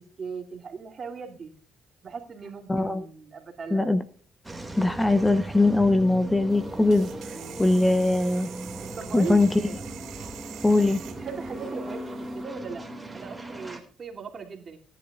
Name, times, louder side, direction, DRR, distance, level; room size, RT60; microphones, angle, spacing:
voice 1, 0.0-1.5 2.0-4.0 8.9-9.8 11.2-12.8 13.1-14.8, right 5 dB, 45° right, 2 dB, 2.8 m, -38 dB
voice 2, 2.7-3.1 3.7-4.0 4.8-7.1 7.6-8.5 9.1-9.5 10.6-11.0, left 2 dB, 15° left, 11 dB, 0.8 m, -21 dB
sound 1, 4.4-13.8, right 1 dB, 10° right, 2.2 m, -38 dB
sound 2, 6.5-12.4, right 11 dB, 80° right, 1.2 m, -46 dB
18.0 x 10.5 x 2.4 m, 0.42 s
cardioid pair, 90°, 0 cm